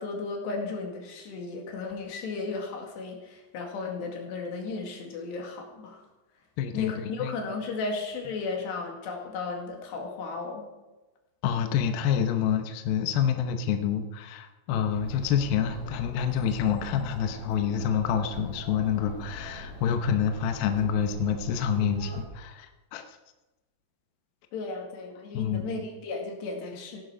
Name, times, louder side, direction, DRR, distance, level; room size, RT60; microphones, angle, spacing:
voice 1, 0.0-6.0 6.7-10.7 24.5-27.0, left 4 dB, 90° left, 1 dB, 4.4 m, -35 dB
voice 2, 6.6-7.3 11.4-23.0 25.3-25.6, left 8 dB, 75° left, 6 dB, 2.6 m, -27 dB
Chatter, 14.9-22.2, left 1 dB, 40° left, 4.8 m, -42 dB
16.0 x 12.0 x 5.1 m, 1.1 s
omnidirectional pair, 4.7 m